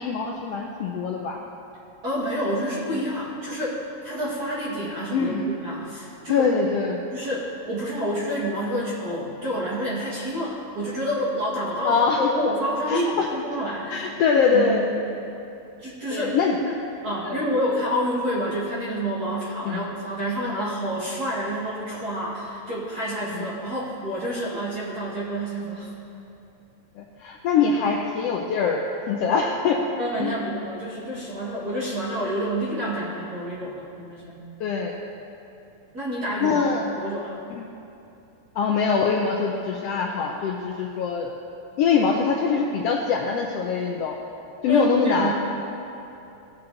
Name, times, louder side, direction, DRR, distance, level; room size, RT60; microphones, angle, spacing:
voice 1, 0.0-1.4 5.1-5.4 6.3-7.0 11.8-12.3 12.9-13.3 13.9-14.9 16.1-16.6 17.2-17.4 19.7-19.8 23.3-23.4 27.0-29.8 30.2-30.3 34.6-34.9 36.4-36.8 37.6-37.7 38.6-41.3 41.8-44.2 44.6-45.3, left 5 dB, 90° left, 0 dB, 1.4 m, -23 dB
voice 2, 2.0-5.3 5.6-6.5 7.1-14.9 15.8-16.4 16.6-16.7 17.0-25.9 30.0-34.4 35.9-37.3 44.7-45.3, equal, 40° right, -7 dB, 1.7 m, -28 dB
17.0 x 7.2 x 3.9 m, 2.8 s
omnidirectional pair, 3.5 m